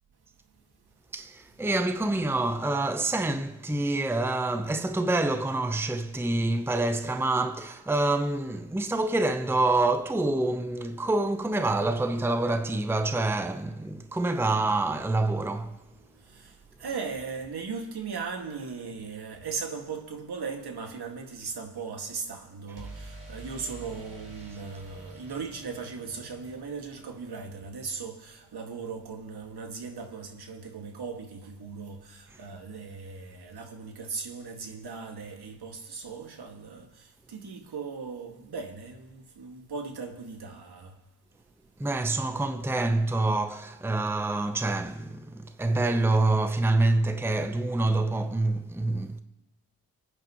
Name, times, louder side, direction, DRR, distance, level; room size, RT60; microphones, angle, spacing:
voice 1, 1.1-15.8 32.3-32.4 41.8-49.2, right 2 dB, 5° right, 0.9 m, -27 dB
sound 1, 14.6-16.7 22.8-28.5, right 1 dB, 30° right, 4.8 m, -49 dB
voice 2, 16.2-41.0, right 5 dB, 60° right, 2.1 m, -38 dB
28.0 x 9.4 x 3.1 m
supercardioid pair, 40°, 43 cm